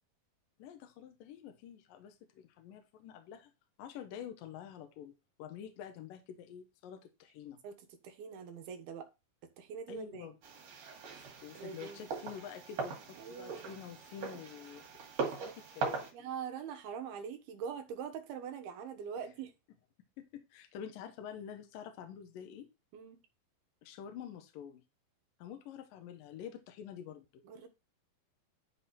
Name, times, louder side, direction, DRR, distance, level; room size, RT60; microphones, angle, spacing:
voice 1, 0.6-3.5 3.8-7.6 9.9-10.4 11.1-14.8 15.2-16.3 20.2-22.7 23.8-24.8 25.4-27.4, left 9 dB, 70° left, 2.6 m, -48 dB
voice 2, 8.0-9.1 9.6-10.3 11.1-12.1 13.2-13.5 16.1-19.5 22.9-23.2 27.5-27.7, right 7 dB, 80° right, 3.2 m, -43 dB
sound 1, 10.4-16.1, right 5 dB, 60° right, 3.7 m, -40 dB
11.5 x 4.1 x 4.2 m
omnidirectional pair, 4.4 m